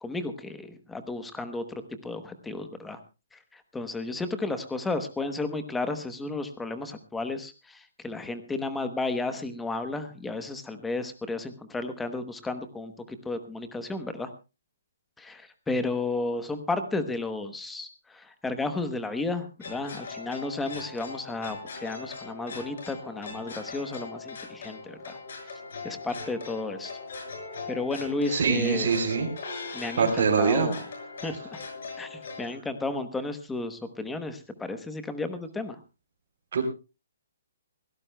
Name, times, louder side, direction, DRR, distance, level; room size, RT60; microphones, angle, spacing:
voice 1, 0.0-3.0 3.3-14.3 15.2-25.2 25.8-26.9 27.7-28.9 29.7-30.8 31.2-31.6 32.0-35.8, left 3 dB, 5° left, 9 dB, 1.0 m, -33 dB
sound 1, 19.6-32.5, left 3 dB, 55° left, 6.6 m, -40 dB
voice 2, 28.3-29.3 30.0-30.7 36.5-36.6, right 5 dB, 50° right, -2 dB, 3.3 m, -23 dB
23.5 x 17.0 x 2.3 m, 0.30 s
hypercardioid pair, 175°, 0 cm